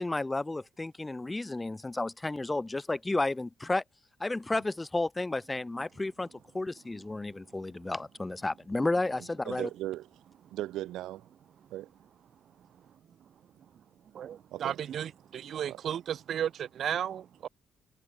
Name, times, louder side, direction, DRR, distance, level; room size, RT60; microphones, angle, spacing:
voice 1, 0.0-3.8 4.2-6.3 6.5-9.7, left 2 dB, 10° left, 0.9 m, -32 dB
voice 2, 9.4-10.1 10.5-11.3 11.7-11.9 14.5-14.8 15.7-15.8, right 15 dB, 85° right, 1.2 m, -37 dB
voice 3, 14.1-17.5, right 9 dB, 45° right, 0.9 m, -34 dB
cardioid pair, 175°, 0 cm